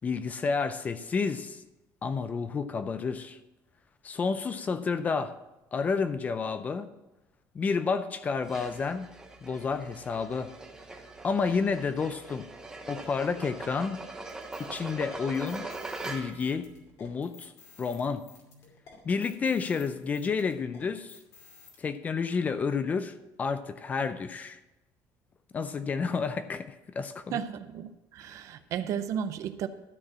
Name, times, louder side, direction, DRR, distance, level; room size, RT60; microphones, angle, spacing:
voice 1, 0.0-1.6 2.0-3.4 4.0-5.3 5.7-6.9 7.5-9.1 9.4-10.5 11.2-12.5 12.9-14.0 14.6-15.7 16.0-16.7 17.0-17.5 17.8-18.2 19.0-21.2 21.8-24.6 25.5-27.4, left 5 dB, 25° left, 12 dB, 0.4 m, -30 dB
sound 1, 8.4-16.5, right 2 dB, 10° right, 0.9 m, -42 dB
sound 2, 14.3-21.8, left 5 dB, 45° left, 2.5 m, -54 dB
voice 2, 27.3-29.7, right 8 dB, 50° right, 11 dB, 0.6 m, -34 dB
13.0 x 4.7 x 7.4 m, 0.97 s
cardioid pair, 175°, 7 cm